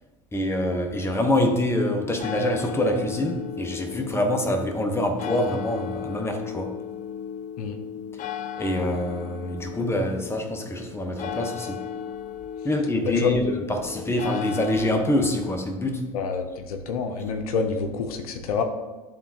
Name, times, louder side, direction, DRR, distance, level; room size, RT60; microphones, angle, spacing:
voice 1, 0.3-6.8 8.6-11.8 12.6-16.0, left 1 dB, 15° left, 4 dB, 1.0 m, -25 dB
sound 1, 1.9-15.6, left 8 dB, 45° left, 0.4 m, -35 dB
voice 2, 13.0-13.4 16.1-18.6, left 5 dB, 80° left, 5 dB, 0.7 m, -27 dB
11.0 x 3.6 x 2.9 m, 1.2 s
hypercardioid pair, 75°, 19 cm